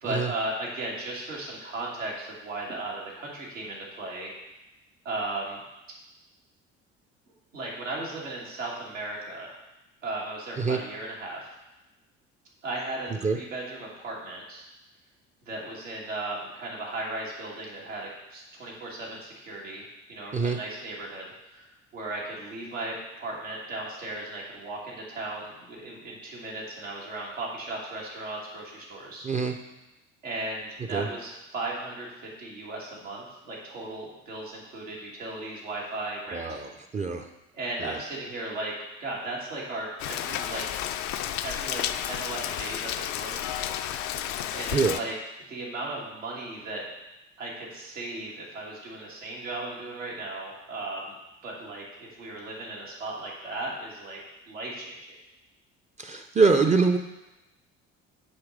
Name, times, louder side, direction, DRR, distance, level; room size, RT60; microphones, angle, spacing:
voice 1, 0.0-4.3 5.0-5.6 7.5-9.6 10.0-11.5 12.6-14.7 15.4-29.3 30.2-36.6 37.5-38.7 39.0-40.6 41.1-43.7 44.5-45.1 45.5-46.8 47.4-51.1 51.4-54.2 54.5-55.0, right 2 dB, 85° right, -4 dB, 1.6 m, -36 dB
voice 2, 29.2-29.6 30.9-31.1 36.3-37.3 37.8-38.0 44.7-45.0 56.0-57.0, right 4 dB, 20° right, 5 dB, 0.5 m, -24 dB
Rain, 40.0-45.0, left 11 dB, 50° left, 0.5 m, -32 dB
8.1 x 3.2 x 5.1 m, 0.98 s
figure-of-eight pair, 55°, 37 cm